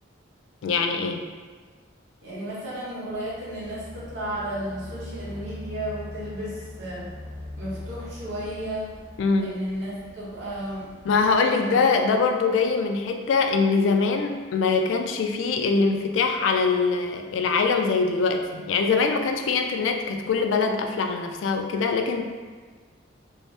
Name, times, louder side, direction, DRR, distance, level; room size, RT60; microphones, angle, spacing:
voice 1, 0.6-1.2 9.2-9.5 11.1-22.2, left 4 dB, 80° left, 5 dB, 0.3 m, -23 dB
voice 2, 2.2-7.1 7.6-8.9 9.4-10.9 11.5-11.7, right 1 dB, 75° right, -8 dB, 1.0 m, -33 dB
sound 1, 3.0-11.4, left 1 dB, 40° right, 0.8 m, -42 dB
2.6 x 2.0 x 3.3 m, 1.5 s
head